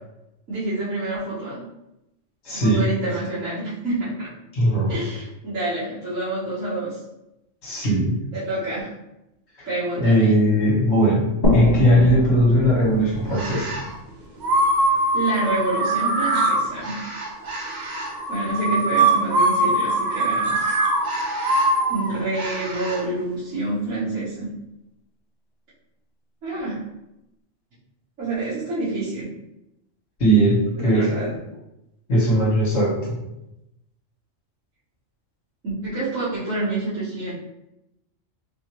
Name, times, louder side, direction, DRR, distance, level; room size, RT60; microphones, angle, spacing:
voice 1, 0.5-1.6 2.5-4.3 4.9-7.0 8.3-8.9 9.6-10.3 15.1-17.0 18.3-20.7 21.9-24.5 26.4-26.8 28.2-29.3 30.7-31.3 35.6-37.3, right 2 dB, 80° right, -13 dB, 1.7 m, -27 dB
voice 2, 2.4-2.9 4.5-5.0 7.6-8.2 9.6-9.7 9.9-13.7 30.2-31.1 32.1-33.2, equal, 55° left, -5 dB, 1.6 m, -19 dB
sound 1, 11.4-14.9, left 2 dB, 35° left, 1.0 m, -25 dB
sound 2, 13.3-13.9 14.4-23.0, right 2 dB, 45° right, 0.7 m, -22 dB
4.1 x 2.8 x 3.0 m, 0.88 s
omnidirectional pair, 1.3 m